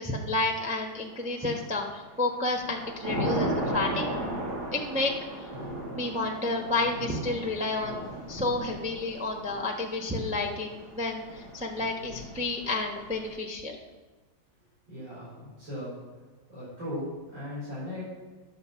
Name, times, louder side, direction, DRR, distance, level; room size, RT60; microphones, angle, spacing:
voice 1, 0.0-4.1 4.7-5.1 5.9-13.8, left 2 dB, 5° right, 1 dB, 0.6 m, -30 dB
Thunder / Rain, 1.2-1.7 2.2-13.3, right 1 dB, 55° right, 2.7 m, -36 dB
voice 2, 14.9-16.0 16.5-18.0, left 1 dB, 70° right, -9 dB, 4.9 m, -37 dB
10.0 x 6.6 x 5.7 m, 1.3 s
omnidirectional pair, 2.1 m